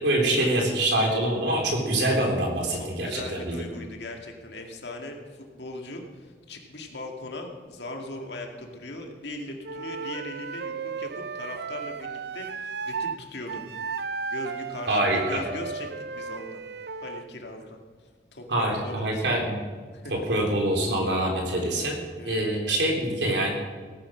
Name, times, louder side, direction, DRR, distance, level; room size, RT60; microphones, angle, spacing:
voice 1, 0.0-3.6 14.9-15.4 18.5-19.6 20.1-23.5, right 1 dB, 90° right, 0 dB, 3.5 m, -25 dB
voice 2, 2.7-13.6 14.3-16.6 17.0-17.8 18.3-19.3 19.9-20.1 22.2-22.5, left 1 dB, 85° left, 2 dB, 2.1 m, -39 dB
Wind instrument woodwind instrument, 9.6-13.2 13.5-17.3, right 5 dB, 70° right, 0.5 m, -35 dB
17.0 x 9.7 x 6.1 m, 1.5 s
head